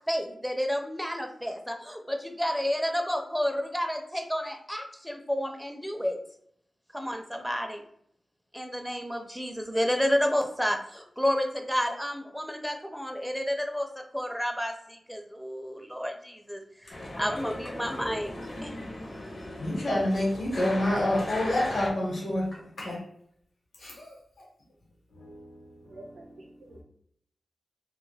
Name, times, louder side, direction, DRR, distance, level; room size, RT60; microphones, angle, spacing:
voice 1, 0.1-6.2 6.9-7.8 8.5-13.9 14.1-18.3 18.6-18.7, equal, ahead, 0.4 m, -30 dB
sound 1, 16.9-21.9, left 1 dB, 55° left, 0.6 m, -38 dB
voice 2, 19.6-23.0 23.8-24.1 25.1-26.3, left 1 dB, 80° left, 0.9 m, -29 dB
voice 3, 25.9-26.8, right 2 dB, 90° right, 0.5 m, -49 dB
2.2 x 2.1 x 3.2 m
cardioid pair, 60°, 0 cm